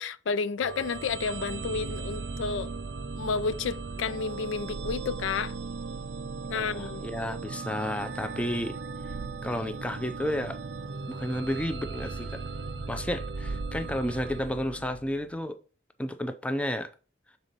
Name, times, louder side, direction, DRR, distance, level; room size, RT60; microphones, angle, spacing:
voice 1, 0.0-2.7 3.2-5.5 6.5-7.1, left 5 dB, 80° left, 0.4 m, -31 dB
sound 1, 0.6-15.3, right 4 dB, 65° right, 0.5 m, -37 dB
voice 2, 6.5-8.8 9.1-9.2 9.4-10.6 11.1-12.4 12.9-15.6 16.0-16.9, left 1 dB, 5° left, 0.4 m, -32 dB
6.8 x 4.1 x 3.9 m
head